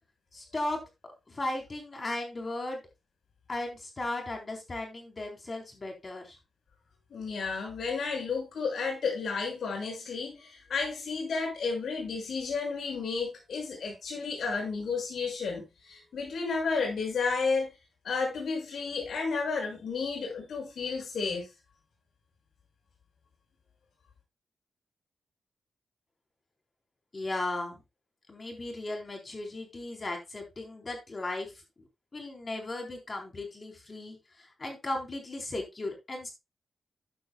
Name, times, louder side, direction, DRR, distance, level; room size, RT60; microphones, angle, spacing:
voice 1, 0.3-0.8 1.3-2.8 3.5-6.4 27.1-27.8 28.3-31.5 32.1-36.3, left 2 dB, 30° left, 4.0 m, -36 dB
voice 2, 7.1-17.7 18.0-21.5, left 4 dB, 75° left, 6.1 m, -32 dB
13.0 x 9.1 x 2.3 m
wide cardioid pair, 150°, 0 cm